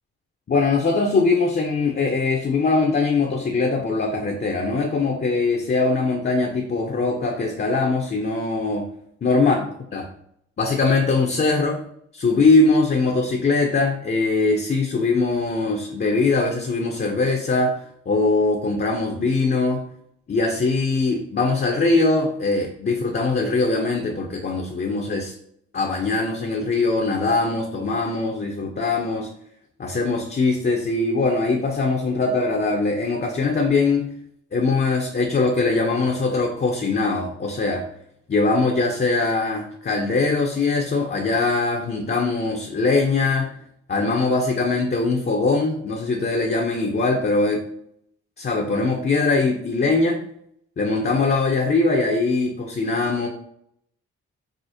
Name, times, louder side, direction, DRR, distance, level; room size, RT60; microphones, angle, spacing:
voice 1, 0.5-8.9 9.2-9.6 9.9-10.1 10.6-11.8 12.1-17.8 18.1-19.8 20.3-25.3 25.7-29.3 29.8-34.1 34.5-37.9 38.3-43.5 43.9-47.6 48.4-50.2 50.8-53.3, left 3 dB, 35° left, 1 dB, 0.6 m, -21 dB
4.8 x 2.0 x 2.7 m, 0.69 s
supercardioid pair, 50°, 29 cm